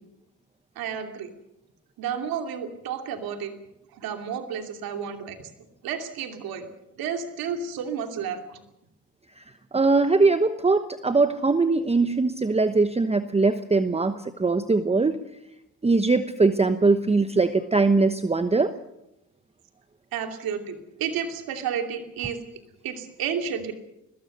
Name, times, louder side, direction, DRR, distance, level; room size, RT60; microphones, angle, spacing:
voice 1, 0.8-1.3 2.0-3.5 3.9-5.5 5.8-6.7 7.0-8.6 20.1-22.4 22.8-23.7, right 7 dB, 80° right, 6 dB, 2.8 m, -31 dB
voice 2, 9.7-15.2 15.8-18.7, right 3 dB, 15° right, 10 dB, 1.1 m, -21 dB
21.5 x 21.0 x 6.7 m, 0.85 s
supercardioid pair, 75°, 35 cm